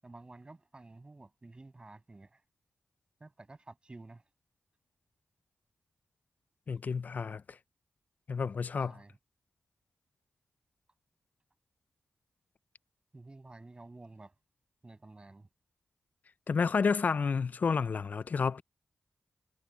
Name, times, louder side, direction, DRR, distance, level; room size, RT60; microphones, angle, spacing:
voice 1, 0.0-2.4 3.2-4.3 8.8-9.2 13.1-14.3 14.8-15.5, right 2 dB, 30° right, 7.8 m, -51 dB
voice 2, 6.7-7.6 8.3-8.9 16.5-18.6, left 5 dB, 55° left, 0.5 m, -30 dB
cardioid pair, 75°, 3 cm